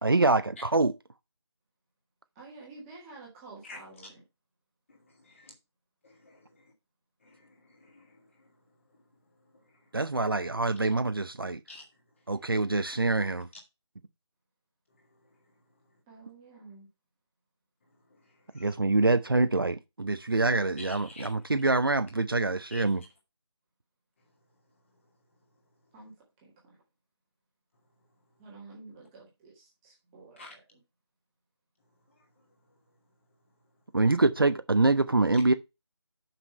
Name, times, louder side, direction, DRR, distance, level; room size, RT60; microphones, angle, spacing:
voice 1, 0.0-0.9 9.9-11.6 12.3-13.5 18.6-23.0 33.9-35.5, right 3 dB, 50° right, 0.7 m, -25 dB
voice 2, 2.3-4.2 16.1-16.9 25.9-26.1 26.4-26.8 28.4-30.8, right 3 dB, 5° right, 1.4 m, -50 dB
voice 3, 4.9-5.5 6.0-6.7 7.2-8.5 8.9-9.0 9.4-9.9 11.7-11.9 12.4-12.5 15.0-15.4 18.1-18.7 20.8-21.3 22.7-22.9 30.4-30.5 32.2-32.5, left 2 dB, 25° left, 2.3 m, -51 dB
6.3 x 6.0 x 5.5 m
figure-of-eight pair, 160°, 15 cm